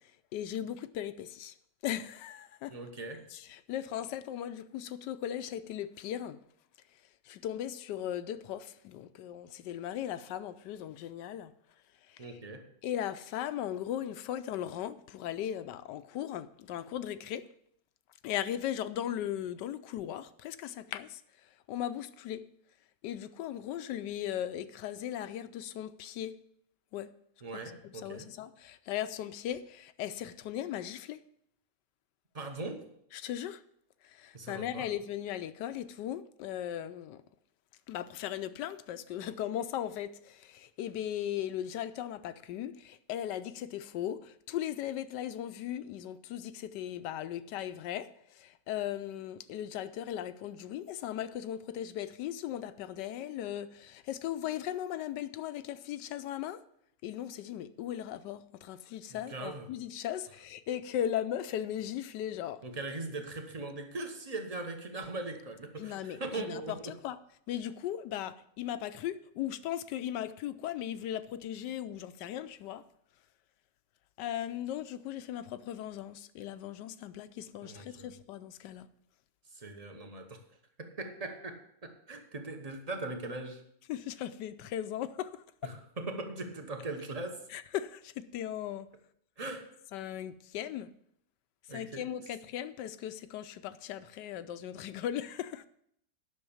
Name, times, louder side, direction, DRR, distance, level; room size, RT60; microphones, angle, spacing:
voice 1, 0.3-1.5 1.8-2.7 3.3-6.4 7.3-11.5 12.1-12.3 12.8-17.5 18.2-21.2 21.7-22.4 23.0-26.3 26.9-27.1 27.8-31.2 33.1-33.6 34.0-37.2 37.9-56.6 57.0-62.6 65.8-67.2 67.5-72.8 74.2-78.9 83.9-85.4 87.5-88.9 89.9-90.9 91.7-95.7, left 11 dB, 80° left, 1.2 m, -37 dB
voice 2, 2.7-3.3 12.2-12.7 27.4-28.3 32.3-32.8 34.3-34.9 59.1-59.7 62.6-66.9 77.6-78.1 79.5-80.4 80.8-81.5 81.8-83.6 85.6-87.4 89.4-89.7 91.7-92.1, right 2 dB, 25° right, 1.1 m, -40 dB
9.9 x 6.2 x 7.1 m
omnidirectional pair, 1.9 m